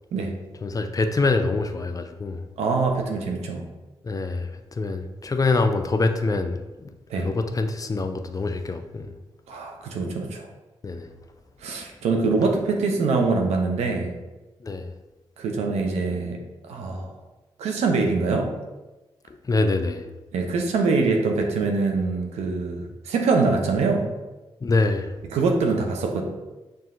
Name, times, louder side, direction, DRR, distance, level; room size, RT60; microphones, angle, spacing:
voice 1, 0.6-2.4 4.0-6.9 7.2-9.1 10.8-11.1 14.6-14.9 19.4-20.0 24.6-25.1, left 3 dB, 35° left, 7 dB, 0.4 m, -25 dB
voice 2, 2.6-3.6 7.1-7.3 9.5-10.5 11.6-14.1 15.4-17.1 17.6-18.5 20.3-24.1 25.2-26.2, right 4 dB, 80° right, 2 dB, 0.6 m, -24 dB
5.7 x 2.6 x 2.4 m, 1.1 s
supercardioid pair, 40°, 11 cm